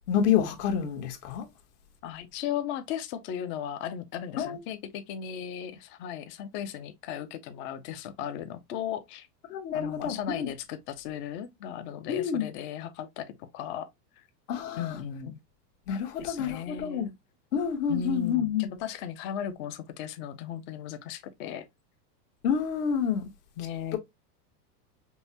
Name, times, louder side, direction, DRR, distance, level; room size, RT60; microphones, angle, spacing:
voice 1, 0.1-1.5 4.4-4.6 9.5-10.5 12.1-12.5 14.5-15.0 15.9-17.1 17.5-18.6 22.4-23.2 23.9-24.0, left 8 dB, 65° left, 1.2 m, -28 dB
voice 2, 2.0-9.3 9.7-13.9 14.8-15.4 16.2-17.1 17.9-21.7 23.6-24.0, left 9 dB, 25° left, 0.3 m, -36 dB
5.3 x 2.0 x 2.7 m
supercardioid pair, 125°, 49 cm